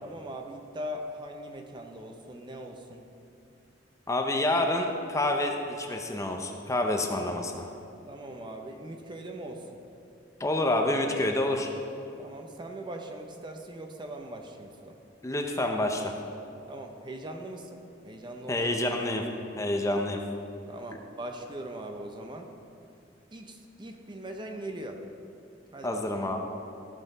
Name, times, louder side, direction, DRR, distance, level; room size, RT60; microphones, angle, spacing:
voice 1, 0.0-3.1 8.1-9.7 12.2-15.0 16.7-18.7 20.7-22.5 23.3-25.0 25.7-26.0, right 1 dB, 25° right, 4 dB, 0.6 m, -40 dB
voice 2, 4.1-7.7 10.4-11.7 15.2-16.2 18.5-19.2 19.6-20.2 25.8-26.4, left 1 dB, 15° left, 3 dB, 0.6 m, -28 dB
14.0 x 5.6 x 4.0 m, 2.7 s
head